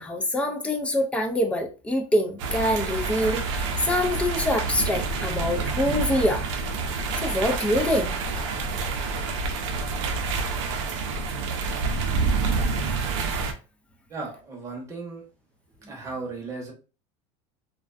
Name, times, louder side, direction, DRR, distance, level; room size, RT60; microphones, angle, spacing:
voice 1, 0.0-6.5 7.1-8.1, left 1 dB, 10° left, 0.3 m, -25 dB
sound 1, 2.4-13.5, right 4 dB, 75° right, 0.5 m, -28 dB
voice 2, 14.1-15.2 15.9-16.7, right 3 dB, 20° right, 0.8 m, -35 dB
2.4 x 2.2 x 2.4 m
supercardioid pair, 150°, 16 cm